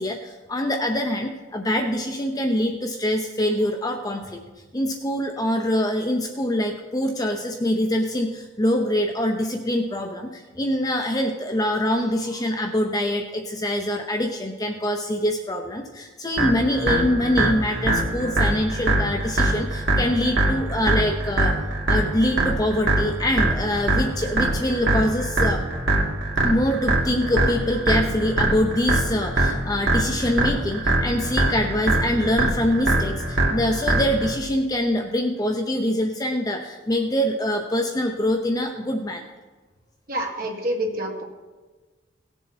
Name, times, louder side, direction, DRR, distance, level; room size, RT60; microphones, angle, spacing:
voice 1, 0.0-4.4 4.7-21.5 21.9-25.6 26.4-39.2, left 1 dB, 20° left, 4 dB, 0.7 m, -24 dB
sound 1, 16.4-34.4, right 2 dB, 70° right, 2.1 m, -23 dB
voice 2, 40.1-41.2, right 1 dB, 45° right, 1 dB, 1.7 m, -27 dB
17.5 x 7.1 x 4.3 m, 1.3 s
head